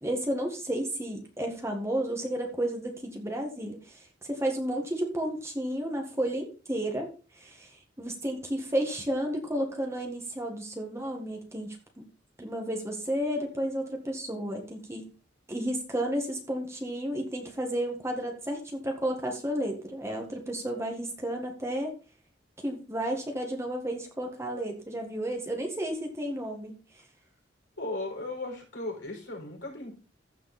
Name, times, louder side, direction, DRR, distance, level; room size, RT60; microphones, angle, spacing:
voice 1, 0.0-7.1 7.4-7.7 8.0-11.8 12.4-15.1 15.5-21.9 22.6-26.8, right 1 dB, 15° right, 1 dB, 1.9 m, -32 dB
voice 2, 27.8-30.0, left 2 dB, 85° left, 0 dB, 5.3 m, -36 dB
14.5 x 5.0 x 4.3 m, 0.34 s
head